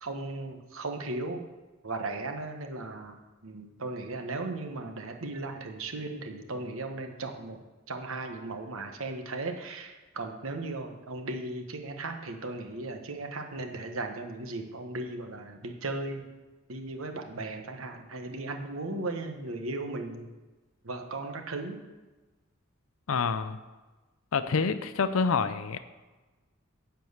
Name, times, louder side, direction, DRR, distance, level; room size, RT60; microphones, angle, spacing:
voice 1, 0.0-1.5 1.8-7.6 7.9-16.3 16.7-20.3 20.8-21.8, right 2 dB, 80° right, 5 dB, 1.2 m, -36 dB
voice 2, 23.1-23.6 24.3-25.8, left 5 dB, 85° left, 12 dB, 0.5 m, -27 dB
10.5 x 4.6 x 7.9 m, 1.2 s
head